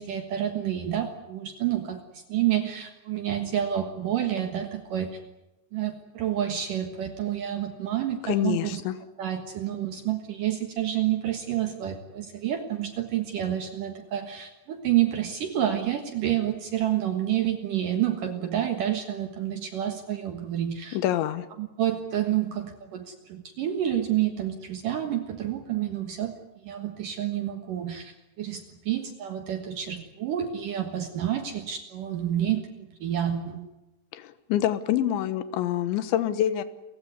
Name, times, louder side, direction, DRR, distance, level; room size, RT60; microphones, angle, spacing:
voice 1, 0.0-5.2 5.7-8.8 9.2-21.0 21.6-26.3 26.6-33.7, right 11 dB, 60° right, 7 dB, 2.5 m, -29 dB
voice 2, 8.2-9.0 20.9-21.5 34.1-36.6, left 12 dB, 80° left, 13 dB, 3.5 m, -26 dB
29.0 x 16.0 x 9.6 m, 0.97 s
omnidirectional pair, 5.4 m